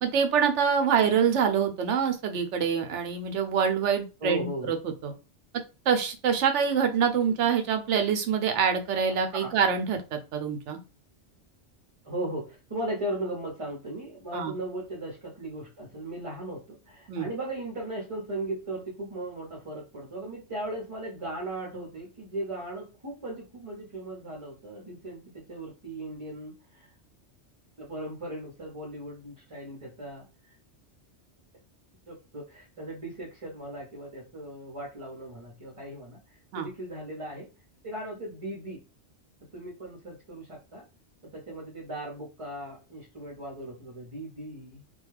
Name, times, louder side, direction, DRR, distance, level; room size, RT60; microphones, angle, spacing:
voice 1, 0.0-4.8 5.0-5.1 5.9-10.8 14.3-14.5 17.1-17.3 36.5-36.7, right 7 dB, 80° right, 6 dB, 0.9 m, -25 dB
voice 2, 4.2-4.7 8.9-9.0 9.4-9.5 12.0-26.9 27.8-30.2 32.1-37.5 37.8-38.8 39.5-40.8 41.2-44.8, right 1 dB, 30° right, -3 dB, 0.7 m, -37 dB
2.4 x 2.2 x 3.1 m, 0.30 s
omnidirectional pair, 1.2 m